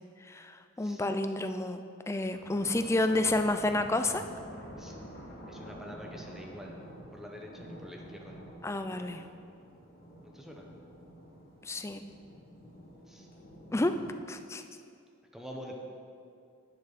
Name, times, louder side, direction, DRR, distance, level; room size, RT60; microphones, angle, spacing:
voice 1, 0.3-4.2 8.6-9.2 11.6-12.0 13.7-13.9 14.3-14.6, left 2 dB, 15° left, 8 dB, 0.4 m, -30 dB
sound 1, 2.1-14.1, equal, 45° left, 1.9 m, -48 dB
voice 2, 5.5-6.8 7.1-8.4 10.2-10.6 13.1-13.3 15.3-15.8, equal, ahead, 0 dB, 0.9 m, -46 dB
12.0 x 8.2 x 4.1 m, 2.4 s
head